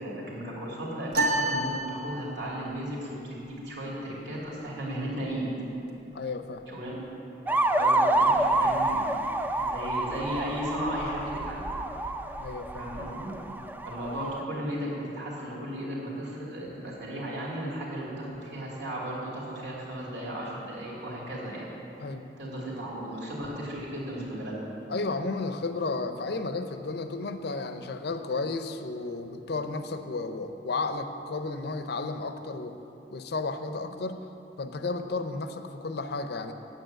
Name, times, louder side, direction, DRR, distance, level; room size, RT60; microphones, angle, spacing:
voice 1, 0.0-5.5 6.7-7.0 7.7-9.0 9.6-11.7 12.7-13.3 13.8-21.7 22.4-24.5, right 1 dB, 80° right, -5 dB, 2.7 m, -35 dB
sound 1, 1.1-2.6, right 1 dB, 60° right, 1.1 m, -29 dB
voice 2, 6.1-6.7 12.4-12.9 22.0-22.3 24.9-32.8 33.1-34.3 34.6-36.5, left 3 dB, 65° left, 8 dB, 0.6 m, -33 dB
sound 2, 7.5-14.4, right 2 dB, 10° right, 0.3 m, -28 dB
9.2 x 8.4 x 7.5 m, 3.0 s
head